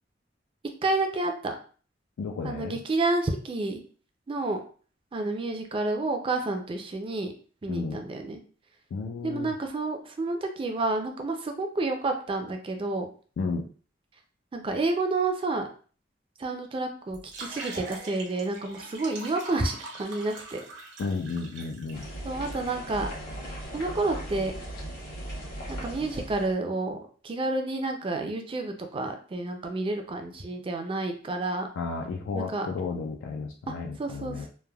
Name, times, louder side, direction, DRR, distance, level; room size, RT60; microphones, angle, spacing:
voice 1, 0.8-1.6 2.4-3.8 4.3-4.6 5.1-7.3 7.6-8.4 9.2-13.1 14.5-15.7 16.4-20.6 22.2-23.1 23.7-24.5 25.7-27.0 27.2-31.7 32.3-32.7 33.7-33.8 34.0-34.5, right 2 dB, 30° right, 4 dB, 0.4 m, -29 dB
voice 2, 2.2-2.8 7.7-8.0 8.9-9.5 13.4-13.7 21.0-22.1 31.8-34.5, left 4 dB, 85° left, 2 dB, 0.3 m, -33 dB
sound 1, 17.1-22.0, right 3 dB, 75° right, 0.8 m, -42 dB
sound 2, 21.9-26.5, right 1 dB, 55° left, 1.0 m, -38 dB
3.2 x 2.1 x 2.2 m, 0.40 s
head